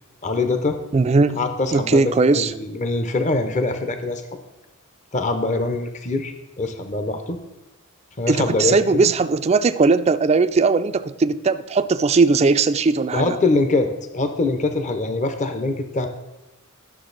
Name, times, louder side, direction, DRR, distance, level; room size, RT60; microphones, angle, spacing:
voice 1, 0.2-0.8 1.3-4.2 5.1-7.4 8.2-9.1 13.1-16.1, left 3 dB, 35° left, 7 dB, 0.6 m, -23 dB
voice 2, 0.9-1.4 1.7-2.5 8.3-13.4, right 4 dB, 30° right, 12 dB, 0.3 m, -18 dB
11.5 x 6.5 x 4.0 m, 0.97 s
head